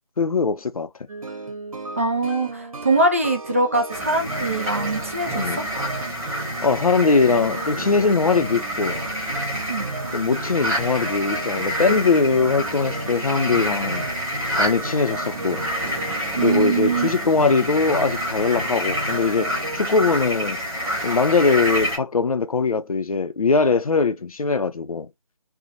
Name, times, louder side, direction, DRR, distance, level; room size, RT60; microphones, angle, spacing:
voice 1, 0.2-0.9 5.3-5.6 6.6-9.0 10.1-14.1 14.6-15.6 16.4-20.6 21.0-25.1, left 4 dB, 90° left, 0.6 m, -21 dB
Guitar with pieno melody, 1.1-19.8, right 2 dB, 75° right, 1.0 m, -34 dB
voice 2, 2.0-5.5 9.7-9.9 16.4-17.1, right 2 dB, 25° right, 0.4 m, -22 dB
sound 1, 3.9-22.0, equal, 10° right, 0.8 m, -28 dB
2.6 x 2.1 x 2.7 m
figure-of-eight pair, 160°, 18 cm